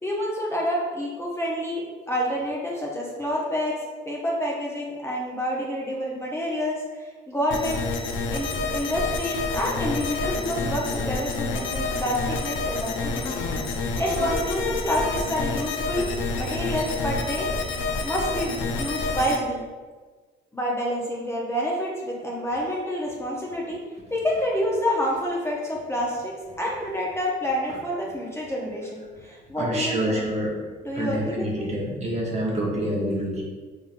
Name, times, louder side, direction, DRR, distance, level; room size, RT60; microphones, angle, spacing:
voice 1, 0.0-3.7 4.1-7.8 8.3-13.4 14.0-16.1 16.4-17.5 18.0-19.7 20.5-23.8 24.1-30.3 30.8-31.7, equal, 15° left, -4 dB, 0.7 m, -28 dB
sound 1, 7.5-19.4, left 3 dB, 75° left, 0.5 m, -28 dB
voice 2, 29.6-30.5 30.9-33.4, right 1 dB, 35° right, -3 dB, 0.9 m, -27 dB
3.5 x 2.9 x 2.5 m, 1.4 s
cardioid pair, 90°, 20 cm